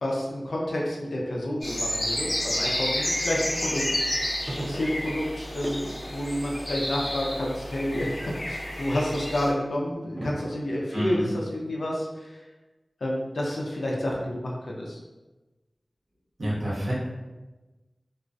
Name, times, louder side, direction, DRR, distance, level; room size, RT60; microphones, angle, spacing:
voice 1, 0.0-3.8 4.6-8.2 8.5-12.4 13.0-15.0, left 1 dB, 85° left, -2 dB, 0.4 m, -29 dB
sound 1, 1.6-9.5, left 1 dB, 55° left, 0.7 m, -30 dB
sound 2, 4.1-5.4 5.6-7.8 8.2-8.7 9.5-11.1, right 1 dB, 30° right, 0.6 m, -39 dB
voice 2, 10.9-11.3 16.4-16.9, equal, 80° right, -8 dB, 1.0 m, -28 dB
2.3 x 2.2 x 2.5 m, 1.1 s
wide cardioid pair, 65°, 0 cm